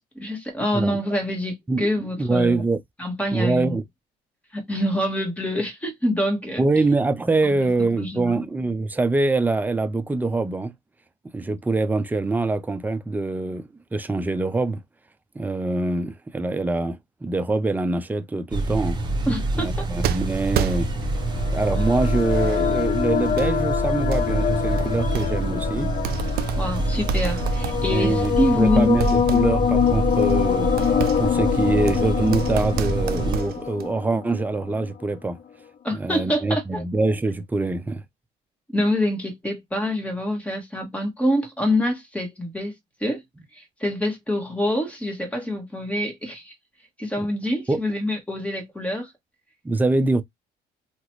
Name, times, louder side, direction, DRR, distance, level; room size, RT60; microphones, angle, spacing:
voice 1, 0.1-2.6 3.0-3.8 4.5-6.6 7.4-7.7 8.0-8.4 19.3-19.9 26.6-28.9 35.8-36.8 38.7-42.7 43.0-43.2 43.5-46.5 47.0-49.1, left 1 dB, 10° left, 1.4 m, -26 dB
voice 2, 1.7-2.8 3.3-3.8 6.6-10.7 11.3-14.8 15.4-19.0 19.6-20.9 21.5-25.9 27.9-30.7 31.2-35.4 35.9-38.0 47.2-47.3 47.7-47.8 49.6-50.2, right 3 dB, 10° right, 0.4 m, -24 dB
sound 1, 18.5-33.4, right 2 dB, 25° right, 1.0 m, -26 dB
sound 2, 20.0-21.3 22.0-22.7 23.3-23.5 24.1-24.2 24.8-25.7 25.9-28.6 29.0-33.9, right 9 dB, 65° right, 0.5 m, -32 dB
sound 3, 20.8-34.9, left 9 dB, 50° left, 0.5 m, -25 dB
2.9 x 2.4 x 3.0 m
cardioid pair, 110°, 17 cm